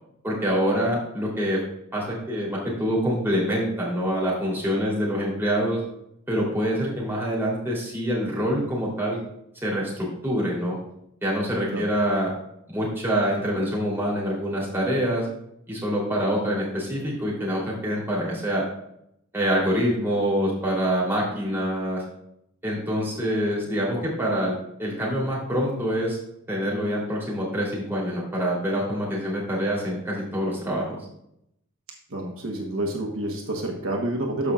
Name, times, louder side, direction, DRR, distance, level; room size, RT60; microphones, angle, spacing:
voice 1, 0.2-1.6 1.9-5.8 6.3-9.2 9.6-10.8 11.2-12.3 12.7-15.3 15.7-18.6 19.3-22.0 22.6-26.2 26.5-31.0, equal, 10° right, -5 dB, 3.3 m, -25 dB
voice 2, 32.1-34.5, right 1 dB, 70° right, 1 dB, 1.2 m, -28 dB
13.5 x 5.6 x 2.4 m, 0.76 s
head